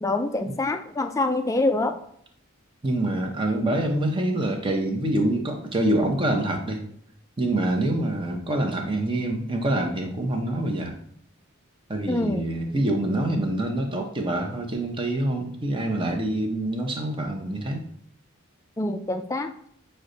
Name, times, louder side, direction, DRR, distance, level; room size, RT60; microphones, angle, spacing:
voice 1, 0.0-2.0 12.1-12.4 18.8-19.5, left 2 dB, 15° left, 7 dB, 0.3 m, -25 dB
voice 2, 2.8-6.8 7.4-11.0 11.9-17.9, right 1 dB, 25° right, 2 dB, 0.7 m, -26 dB
6.4 x 2.1 x 3.8 m, 0.67 s
head